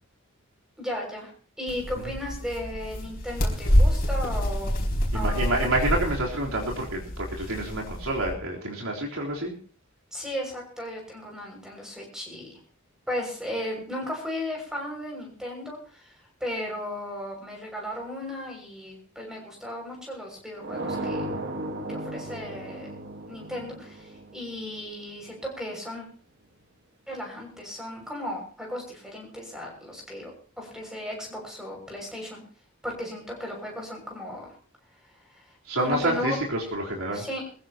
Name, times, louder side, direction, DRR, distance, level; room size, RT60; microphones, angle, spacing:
voice 1, 0.8-4.8 5.1-5.7 10.1-12.6 13.1-21.2 21.9-23.0 23.3-26.0 27.1-32.4 32.8-34.6 35.0-36.4 37.1-37.4, left 1 dB, 5° right, 0 dB, 6.5 m, -35 dB
sound 1, 1.7-8.4, equal, 45° left, 5.0 m, -27 dB
voice 2, 5.1-9.5 35.7-37.3, right 1 dB, 85° right, -2 dB, 4.0 m, -28 dB
sound 2, 20.6-25.3, right 1 dB, 55° right, 1.7 m, -35 dB
22.5 x 15.5 x 3.0 m, 0.41 s
head